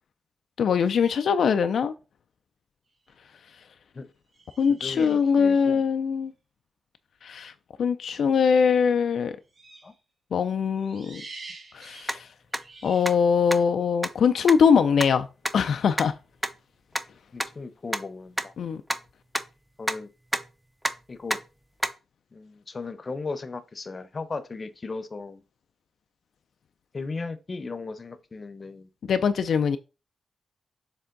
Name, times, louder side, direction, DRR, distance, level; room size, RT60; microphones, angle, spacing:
voice 1, 0.6-1.9 4.6-6.3 7.2-7.5 7.8-9.4 10.3-11.2 11.7-12.3 12.8-15.3 15.5-16.1 18.6-18.8 29.1-29.8, left 6 dB, 75° left, 0.4 m, -22 dB
sound 1, 2.9-3.1 4.3-5.7 9.5-10.0 10.8-13.2, right 3 dB, 45° right, 2.4 m, -47 dB
voice 2, 4.7-5.8 9.8-9.9 17.3-18.5 19.8-20.1 21.1-21.4 22.3-25.4 26.9-28.9, left 3 dB, 35° left, 0.8 m, -36 dB
sound 2, 12.1-12.2 12.5-12.6 13.1-13.2 13.5-13.6 14.0-14.1 14.5-14.6 15.0-15.1 15.4-15.5 16.0-16.1 16.4-16.5 17.0-17.1 17.4-17.5 17.9-18.0 18.4-18.5 18.9-19.0 19.3-19.4 19.9-20.0 20.3-20.5 20.8-20.9 21.3-21.4 21.8-21.9, equal, 5° right, 0.6 m, -26 dB
6.9 x 3.5 x 3.9 m
cardioid pair, 95°, 0 cm